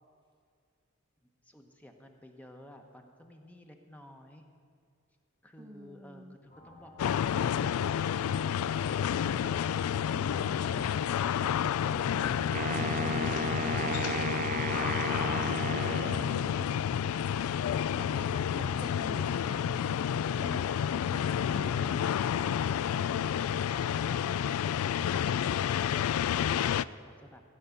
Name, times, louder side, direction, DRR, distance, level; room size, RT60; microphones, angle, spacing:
voice 1, 1.4-4.5 5.4-9.2, left 1 dB, 5° left, 4 dB, 0.9 m, -53 dB
voice 2, 5.6-6.4 10.1-11.0 12.1-16.7 17.9-18.3 18.5-19.9 20.2-20.7 21.1-22.1, right 1 dB, 20° right, 4 dB, 0.8 m, -47 dB
sound 1, 6.5-20.6, equal, 35° left, 2.1 m, -53 dB
sound 2, 7.0-26.9, left 8 dB, 90° left, 0.3 m, -30 dB
Wind instrument woodwind instrument, 12.5-16.8, right 5 dB, 40° right, 0.4 m, -35 dB
16.0 x 5.7 x 9.5 m, 2.2 s
head